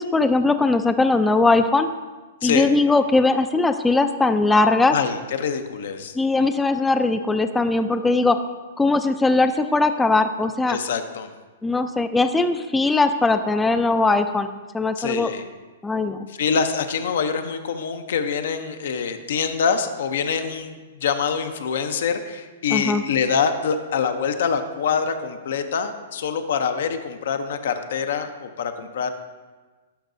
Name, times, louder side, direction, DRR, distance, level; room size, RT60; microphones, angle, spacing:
voice 1, 0.0-1.9 2.4-5.0 6.2-8.4 8.8-10.8 11.6-14.5 14.7-15.3 15.8-16.2 22.7-23.0, left 3 dB, 10° left, 9 dB, 0.3 m, -20 dB
voice 2, 2.4-2.7 4.9-6.1 10.7-11.3 15.0-15.5 16.3-29.1, left 6 dB, 70° left, 9 dB, 0.6 m, -25 dB
11.5 x 5.4 x 2.6 m, 1.3 s
hypercardioid pair, 125°, 0 cm